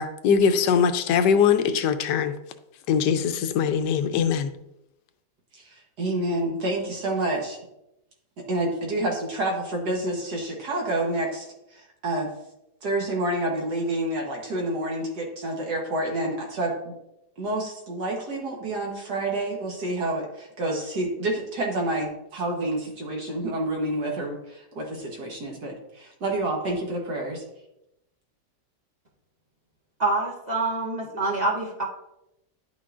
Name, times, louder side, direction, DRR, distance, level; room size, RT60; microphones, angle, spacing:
voice 1, 0.0-2.3 2.9-4.5, left 7 dB, 85° left, 9 dB, 1.2 m, -22 dB
voice 2, 5.5-7.6 8.5-12.3 12.8-16.9 17.4-27.4, right 1 dB, 70° right, 0 dB, 1.7 m, -28 dB
voice 3, 30.0-31.8, right 2 dB, 30° right, -2 dB, 0.9 m, -26 dB
10.5 x 6.0 x 2.5 m, 0.85 s
omnidirectional pair, 1.8 m